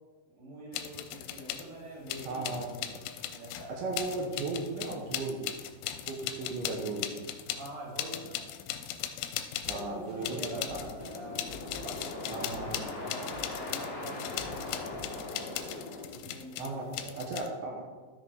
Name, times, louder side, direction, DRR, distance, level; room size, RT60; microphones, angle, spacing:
voice 1, 0.3-4.2 7.5-8.5 9.7-15.6 16.1-17.2, right 1 dB, 20° right, -7 dB, 2.3 m, -45 dB
sound 1, 0.7-1.7 2.1-9.9 10.2-17.5, left 11 dB, 90° left, 3.0 m, -38 dB
voice 2, 2.3-2.7 3.7-5.4 6.1-7.0 9.7-10.8 12.3-12.9 16.6-16.9 17.2-17.9, right 3 dB, 80° right, 0 dB, 3.1 m, -36 dB
sound 2, 9.6-15.1, left 2 dB, 25° left, 0.7 m, -50 dB
sound 3, 9.8-16.0, left 2 dB, 55° left, 2.0 m, -41 dB
13.0 x 5.2 x 3.9 m, 1.4 s
omnidirectional pair, 5.4 m